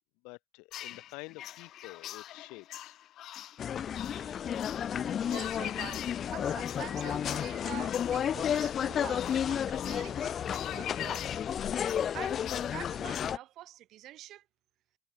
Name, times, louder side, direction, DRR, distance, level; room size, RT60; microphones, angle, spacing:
voice 1, 0.2-2.9, left 28 dB, 85° left, 6.4 m, -48 dB
sound 1, 0.7-13.3, left 13 dB, 70° left, 3.1 m, -44 dB
sound 2, 3.6-13.4, left 8 dB, 55° left, 1.2 m, -32 dB
voice 2, 4.1-4.5 4.9-5.0 5.2-14.5, right 14 dB, 70° right, 7.9 m, -47 dB
supercardioid pair, 70°, 0 cm